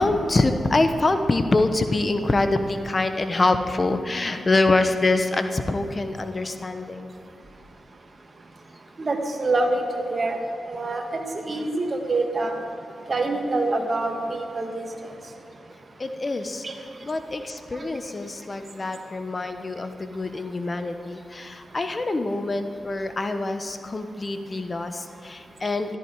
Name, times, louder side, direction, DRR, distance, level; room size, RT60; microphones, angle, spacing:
voice 1, 0.0-7.1 16.0-16.7 17.0-26.0, left 2 dB, 40° left, 8 dB, 1.0 m, -25 dB
voice 2, 9.0-10.4 10.7-12.5 13.1-14.9 16.6-16.7 17.8-17.9, right 2 dB, 50° right, 3 dB, 1.8 m, -26 dB
13.5 x 12.5 x 4.8 m, 2.9 s
supercardioid pair, 40°, 0 cm